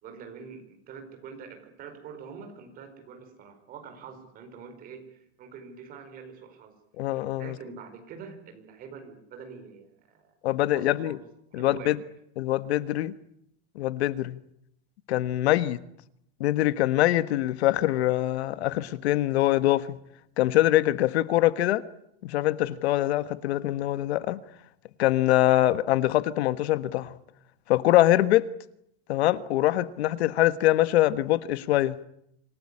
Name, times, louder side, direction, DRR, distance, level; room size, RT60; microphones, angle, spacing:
voice 1, 0.0-6.8 7.4-10.3 10.7-11.2 11.5-12.0, right 6 dB, 25° right, 4.7 m, -45 dB
voice 2, 7.0-7.5 10.4-11.2 11.5-12.0 12.4-13.1 13.7-14.4 15.1-15.8 16.4-20.0 20.4-21.8 22.2-24.4 25.0-27.2 27.7-28.5 29.1-32.0, left 15 dB, 80° left, 1.4 m, -23 dB
26.5 x 17.5 x 9.9 m
supercardioid pair, 175°, 32 cm